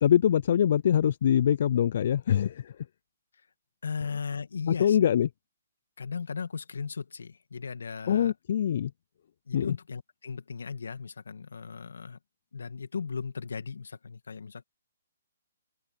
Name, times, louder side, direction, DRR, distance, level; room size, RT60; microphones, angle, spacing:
voice 1, 0.0-2.8 4.8-5.3 8.1-8.9 9.5-9.7, left 9 dB, 55° left, 0.4 m, -23 dB
voice 2, 3.8-5.0 6.0-8.3 9.5-12.2 12.5-14.6, left 5 dB, 80° left, 2.1 m, -36 dB
hypercardioid pair, 145°, 0 cm